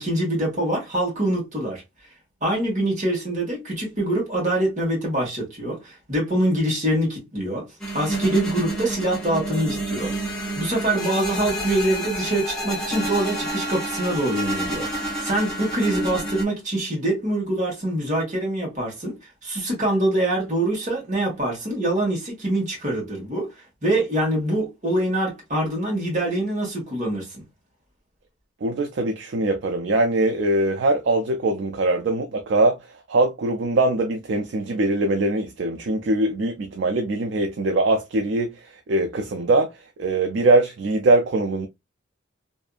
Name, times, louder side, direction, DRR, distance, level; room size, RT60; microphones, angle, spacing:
voice 1, 0.0-1.8 2.4-7.7 7.9-10.1 10.5-19.1 19.4-23.5 23.8-27.4, right 1 dB, 40° right, 1.2 m, -24 dB
sound 1, 7.8-16.4, right 1 dB, 5° left, 0.8 m, -29 dB
voice 2, 28.6-32.8 33.1-39.7 40.0-41.7, right 2 dB, 65° right, 0.4 m, -22 dB
2.6 x 2.4 x 2.3 m
head